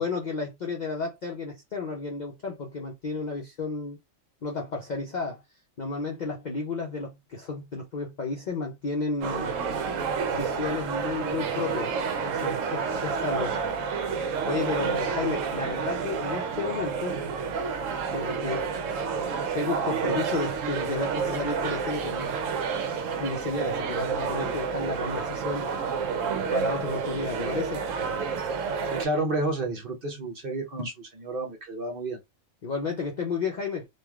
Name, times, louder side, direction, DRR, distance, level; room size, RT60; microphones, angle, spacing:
voice 1, 0.0-4.0 4.4-5.4 5.8-9.5 10.3-11.9 12.2-13.6 14.5-17.2 18.1-18.7 19.5-22.3 23.1-25.7 26.5-27.9 32.6-33.9, left 4 dB, 55° left, 0.5 m, -32 dB
sound 1, 9.2-29.1, right 5 dB, 80° right, 1.0 m, -29 dB
voice 2, 28.8-32.2, right 2 dB, 50° right, 0.9 m, -31 dB
3.1 x 2.4 x 2.3 m
omnidirectional pair, 1.3 m